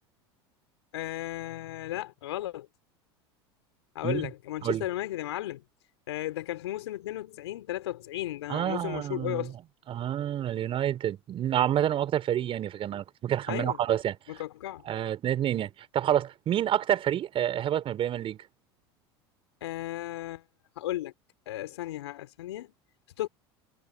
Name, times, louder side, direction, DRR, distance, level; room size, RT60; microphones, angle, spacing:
voice 1, 0.9-2.7 4.0-5.6 6.1-9.5 13.5-13.8 14.3-14.8 19.6-20.4 20.8-21.1 21.5-22.7 23.2-23.3, left 14 dB, 75° left, 3.6 m, -35 dB
voice 2, 8.5-9.5 9.9-14.2 14.8-18.4, right 11 dB, 40° right, 4.7 m, -28 dB
hypercardioid pair, 85°, 14 cm